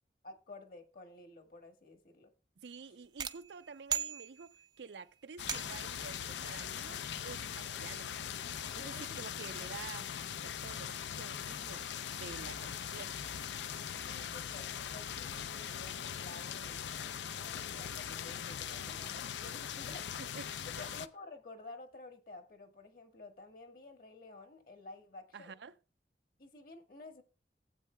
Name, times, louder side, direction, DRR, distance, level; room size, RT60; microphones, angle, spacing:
voice 1, 0.2-2.3 8.8-9.2 14.1-20.1 20.8-25.5 26.4-27.2, left 2 dB, 55° left, 1.4 m, -52 dB
voice 2, 2.6-8.1 8.7-10.1 10.4-13.2 18.8-19.2 20.3-20.9 25.3-25.7, right 5 dB, 80° right, 0.5 m, -50 dB
sound 1, 3.2-4.8 5.5-6.0, right 9 dB, 25° right, 0.4 m, -39 dB
sound 2, 5.4-21.1, left 8 dB, 85° left, 0.5 m, -41 dB
15.5 x 8.3 x 2.2 m
head